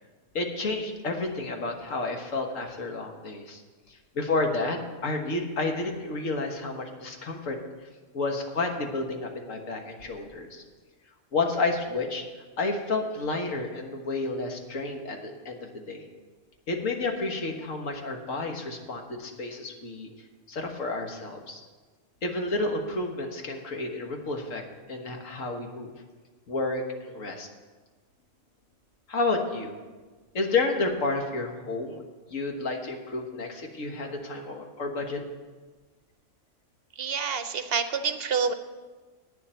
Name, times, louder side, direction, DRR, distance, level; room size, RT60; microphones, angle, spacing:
voice 1, 0.4-3.6 3.9-7.6 8.1-10.6 11.3-12.3 12.6-16.1 16.7-20.1 20.5-21.6 22.2-24.6 24.9-25.9 26.5-27.5 29.1-29.7 30.3-32.0 32.3-35.2, left 3 dB, 85° left, 3 dB, 1.7 m, -30 dB
voice 2, 37.0-38.5, right 6 dB, 60° right, 10 dB, 0.8 m, -27 dB
9.2 x 7.2 x 8.8 m, 1.3 s
omnidirectional pair, 1.3 m